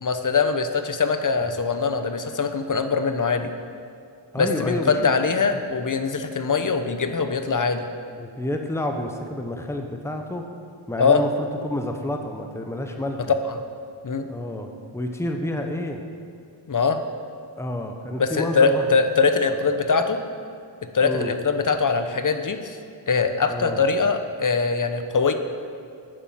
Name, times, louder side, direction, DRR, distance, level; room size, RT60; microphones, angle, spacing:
voice 1, 0.0-3.5 4.4-7.8 11.0-11.2 14.0-14.3 16.7-17.0 18.2-20.2 20.9-22.8 23.1-25.3, left 4 dB, 40° left, 8 dB, 1.0 m, -22 dB
voice 2, 4.3-5.2 8.2-10.4 10.9-11.3 11.6-13.3 14.3-16.0 17.6-18.9 19.5-19.6 21.0-21.3 23.5-23.8, left 1 dB, 5° left, 4 dB, 1.1 m, -29 dB
9.9 x 7.3 x 7.6 m, 2.4 s
cardioid pair, 60°, 48 cm